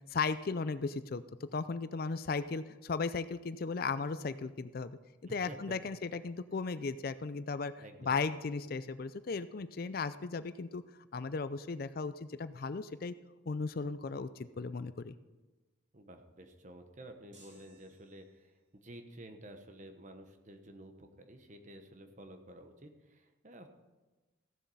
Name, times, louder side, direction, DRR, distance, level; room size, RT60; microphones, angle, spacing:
voice 1, 0.1-1.2 1.5-5.0 5.3-7.7 8.0-10.8 11.1-13.1 13.5-15.1, left 4 dB, 50° left, 13 dB, 0.4 m, -36 dB
voice 2, 5.3-5.7 7.8-8.2 15.9-23.7, right 1 dB, 40° right, 6 dB, 1.1 m, -51 dB
sound 1, 17.3-18.6, right 2 dB, 70° right, 5.0 m, -62 dB
15.0 x 7.3 x 5.5 m, 1.2 s
head